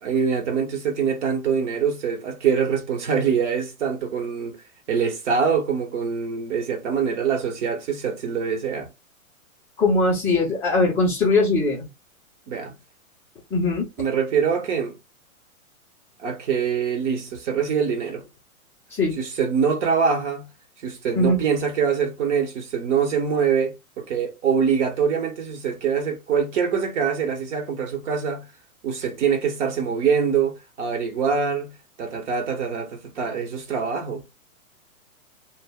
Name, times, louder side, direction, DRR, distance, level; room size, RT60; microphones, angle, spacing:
voice 1, 0.0-4.6 4.9-8.9 12.5-12.7 14.0-15.0 16.2-18.2 19.2-20.5 20.8-28.4 28.8-31.7 32.0-34.2, right 6 dB, 55° right, 0.9 m, -24 dB
voice 2, 9.8-11.9 13.5-13.9 18.9-19.2 21.2-21.4, left 2 dB, 5° left, 0.4 m, -20 dB
2.1 x 2.0 x 3.5 m
hypercardioid pair, 135°, 43 cm